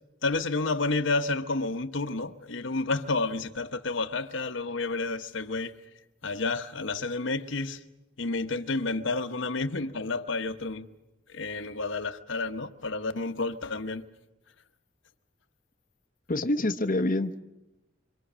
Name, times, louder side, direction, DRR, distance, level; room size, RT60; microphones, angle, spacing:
voice 1, 0.2-5.7 6.2-7.8 8.2-10.9 11.3-14.0, left 3 dB, 70° left, 1.2 m, -30 dB
voice 2, 16.3-17.4, left 1 dB, 45° left, 0.9 m, -26 dB
26.5 x 25.5 x 6.3 m
head